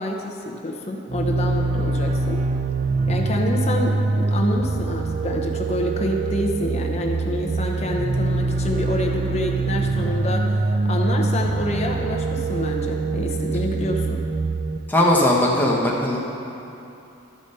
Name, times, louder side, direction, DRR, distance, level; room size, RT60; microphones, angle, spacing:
voice 1, 0.0-2.4 3.1-14.2, left 1 dB, 30° left, 1 dB, 0.8 m, -27 dB
sound 1, 1.1-14.8, right 3 dB, 35° right, 0.3 m, -24 dB
voice 2, 14.9-16.2, left 1 dB, 10° left, -4 dB, 1.0 m, -18 dB
12.5 x 5.0 x 5.4 m, 2.9 s
head